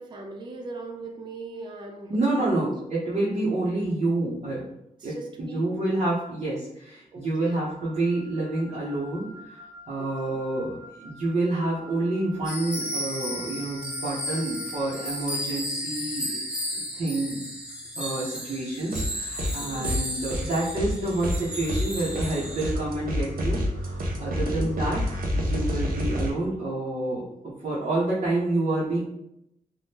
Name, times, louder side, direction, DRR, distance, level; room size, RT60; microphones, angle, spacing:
voice 1, 0.0-2.7 3.3-3.4 5.0-5.6 7.1-7.6 10.0-10.4 19.6-20.0 24.5-24.9, right 3 dB, 30° right, 2 dB, 0.4 m, -40 dB
voice 2, 2.1-4.7 5.0-16.4 16.7-17.4 18.0-25.0 25.3-29.0, right 2 dB, 55° right, -8 dB, 0.8 m, -28 dB
Wind instrument woodwind instrument, 7.5-15.2, right 1 dB, 65° left, 0.6 m, -48 dB
sound 1, 12.4-22.7, equal, 5° right, 0.7 m, -34 dB
sound 2, 18.9-19.6 19.8-26.3, equal, 85° right, 0.6 m, -29 dB
2.7 x 2.2 x 3.4 m, 0.83 s
wide cardioid pair, 140°, 15 cm